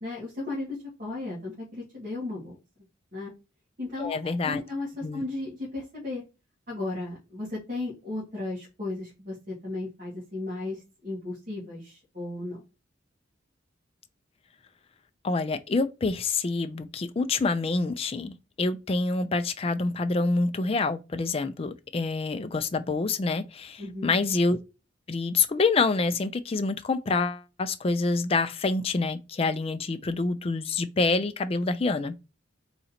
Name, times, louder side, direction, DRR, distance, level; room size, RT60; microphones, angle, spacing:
voice 1, 0.0-2.6 3.1-3.3 3.8-6.2 6.7-12.6 23.8-24.2, left 2 dB, 40° right, 1.8 m, -35 dB
voice 2, 4.0-4.6 5.0-5.2 15.2-24.6 25.1-32.1, left 3 dB, 30° left, 0.4 m, -27 dB
3.8 x 2.8 x 4.2 m
head